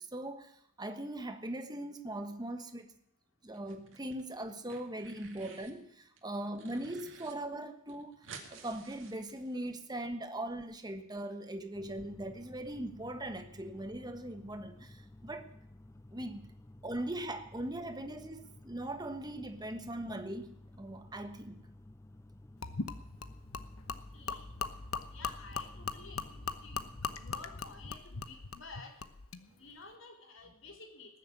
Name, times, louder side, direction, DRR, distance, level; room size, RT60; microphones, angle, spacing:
voice 1, 0.0-2.9 3.4-8.2 8.5-15.5 16.1-16.5 16.8-21.6, right 1 dB, 20° right, 1.3 m, -40 dB
sound 1, 3.5-4.2 4.5-5.8 6.2-7.3 7.6-7.7 7.9-9.8, right 5 dB, 65° right, 2.4 m, -53 dB
sound 2, 11.7-28.0, left 1 dB, 15° left, 0.5 m, -54 dB
Gurgling / Liquid, 22.6-29.4, left 5 dB, 85° left, 1.0 m, -40 dB
voice 2, 23.8-24.5 25.1-29.0 29.4-31.2, left 3 dB, 65° left, 3.4 m, -52 dB
19.5 x 7.5 x 8.6 m
head